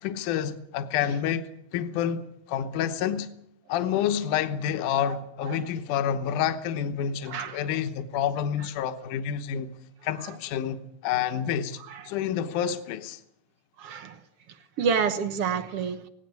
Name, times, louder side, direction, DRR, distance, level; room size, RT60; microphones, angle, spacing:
voice 1, 0.0-3.3 3.7-9.7 10.0-11.8 12.0-13.2, left 9 dB, 70° left, 2.5 m, -28 dB
voice 2, 7.3-7.6 11.9-12.0 13.8-14.1 14.8-16.0, right 6 dB, 60° right, 1.7 m, -28 dB
18.0 x 18.0 x 9.5 m
omnidirectional pair, 3.9 m